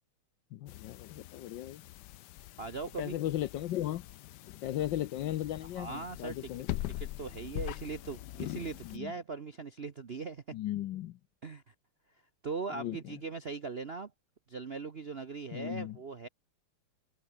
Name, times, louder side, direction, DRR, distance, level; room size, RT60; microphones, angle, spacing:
voice 1, 0.5-1.8 3.0-4.0 4.6-6.7 8.8-9.1 10.5-11.2 12.7-13.1 15.5-16.0, left 13 dB, 70° left, 1.2 m, -36 dB
sound 1, 0.7-9.0, left 15 dB, 85° left, 0.9 m, -43 dB
voice 2, 2.6-3.2 5.7-6.5 7.0-10.6 11.4-11.7 12.4-14.1 14.5-16.3, right 4 dB, 50° right, 0.7 m, -40 dB
open air
omnidirectional pair, 2.4 m